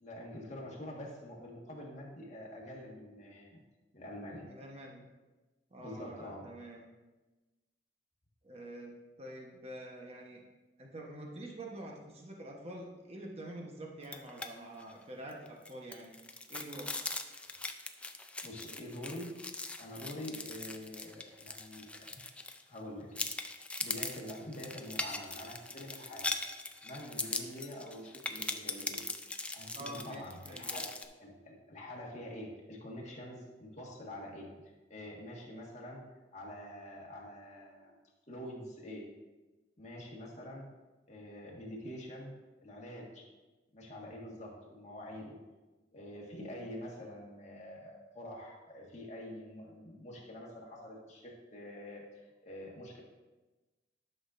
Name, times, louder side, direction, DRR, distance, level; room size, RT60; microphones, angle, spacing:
voice 1, 0.0-3.6 3.9-4.5 5.7-6.5 18.4-19.5 19.8-22.2 22.7-23.1 23.8-26.3 26.8-29.0 29.5-30.9 31.2-34.5 34.9-38.0 38.3-39.1 39.8-40.7 41.1-42.3 42.6-43.2 43.7-45.4 45.9-52.0 52.4-53.0, left 1 dB, 40° left, -2 dB, 1.7 m, -46 dB
voice 2, 4.5-5.0 5.7-6.9 8.4-10.4 10.8-16.1 16.5-16.9 29.7-30.8, right 1 dB, 35° right, 0 dB, 1.1 m, -46 dB
sound 1, 14.0-14.5 14.8-14.9 15.3-22.8 23.2-31.1, left 2 dB, 5° left, 0.4 m, -40 dB
11.5 x 6.2 x 2.6 m, 1.2 s
head